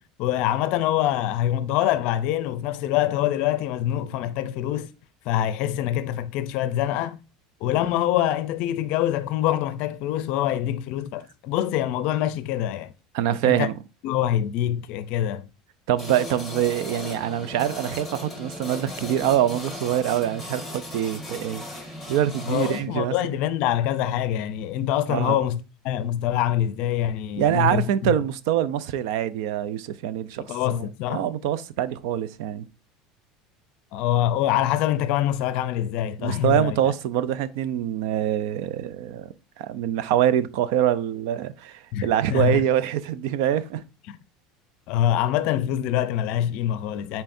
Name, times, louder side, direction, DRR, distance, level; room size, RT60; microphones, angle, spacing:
voice 1, 0.2-4.9 5.2-7.2 7.6-12.9 13.4-13.7 14.0-15.5 22.5-25.6 25.8-28.1 30.5-31.3 33.9-36.8 41.9-42.6 44.1-44.2 44.9-47.2, left 12 dB, 45° left, 0.5 m, -25 dB
voice 2, 13.1-13.7 15.9-21.6 22.1-23.1 25.1-25.4 27.4-32.7 36.2-43.8, right 11 dB, 65° right, 0.5 m, -25 dB
sound 1, 16.0-22.8, left 1 dB, 5° right, 1.7 m, -37 dB
9.1 x 4.4 x 2.6 m
cardioid pair, 175°, 2 cm